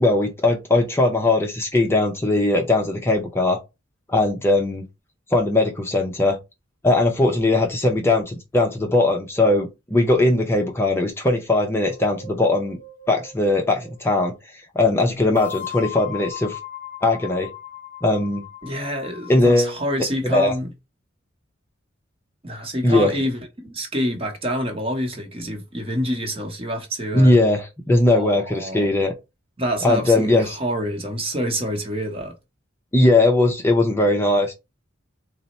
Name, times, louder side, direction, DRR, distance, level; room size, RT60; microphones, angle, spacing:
voice 1, 0.0-3.6 4.1-4.9 5.3-6.4 6.8-12.8 13.1-14.3 14.7-16.6 17.0-17.5 18.0-18.5 19.3-19.7 20.3-20.5 22.8-23.1 27.1-29.1 29.8-30.6 32.9-34.5, left 2 dB, 10° left, 0.5 m, -19 dB
sound 1, 11.8-14.1 15.3-19.6, left 9 dB, 40° left, 0.9 m, -37 dB
voice 2, 18.6-20.7 22.4-27.3 28.1-28.9 29.6-32.3, equal, 30° right, 0.9 m, -27 dB
4.0 x 2.0 x 4.1 m
head